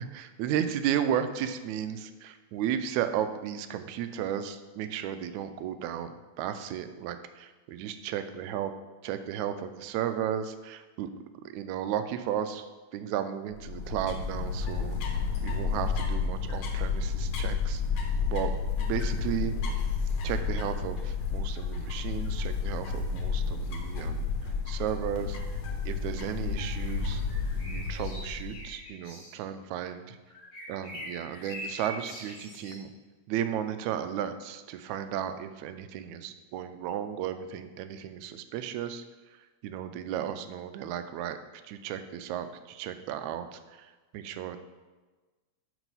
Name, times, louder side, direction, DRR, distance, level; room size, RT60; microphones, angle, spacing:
voice 1, 0.0-6.1 6.4-8.7 9.0-11.1 11.5-15.0 15.4-17.8 18.3-18.5 18.8-19.6 20.2-25.4 25.9-27.2 27.6-30.2 30.7-32.9 33.3-39.0 39.6-41.4 41.6-44.6, right 9 dB, 85° right, 10 dB, 1.9 m, -34 dB
sound 1, 13.5-28.8, left 5 dB, 70° left, 2.1 m, -31 dB
sound 2, 26.8-27.0 27.3-29.3 30.3-32.8, equal, 30° left, 1.5 m, -43 dB
6.0 x 5.8 x 5.4 m, 1.3 s
omnidirectional pair, 3.3 m